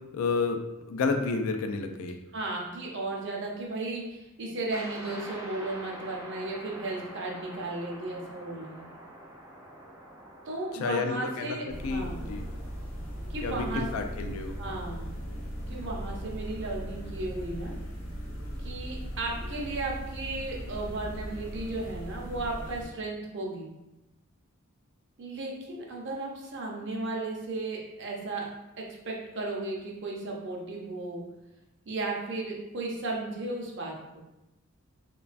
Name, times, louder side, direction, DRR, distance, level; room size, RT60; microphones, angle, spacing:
voice 1, 0.1-0.6 0.9-2.2 10.8-12.4 13.4-14.6, left 4 dB, 75° left, 5 dB, 0.3 m, -30 dB
voice 2, 2.3-8.8 10.5-12.2 13.3-13.8 14.6-15.1 15.7-17.8 18.6-23.7 25.2-28.5 28.8-31.2 31.9-34.2, right 2 dB, 60° right, -1 dB, 0.6 m, -35 dB
sound 1, 4.7-17.2, right 1 dB, 15° right, 0.4 m, -48 dB
sound 2, 11.7-22.8, equal, 60° left, 0.9 m, -38 dB
3.0 x 2.2 x 2.4 m, 0.95 s
head